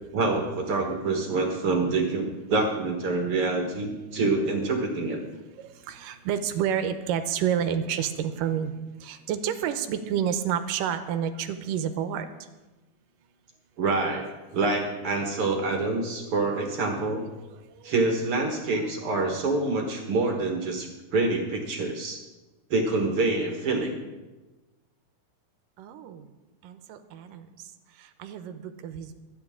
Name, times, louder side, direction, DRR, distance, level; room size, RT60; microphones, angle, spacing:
voice 1, 0.1-5.2 13.8-17.3 17.8-22.2 22.7-24.0, right 3 dB, 50° right, 2 dB, 1.9 m, -26 dB
voice 2, 5.6-8.7 9.0-12.3 25.8-26.2 26.6-27.4 28.2-29.1, right 9 dB, 85° right, 10 dB, 2.4 m, -29 dB
25.0 x 9.4 x 3.7 m, 1.2 s
omnidirectional pair, 3.8 m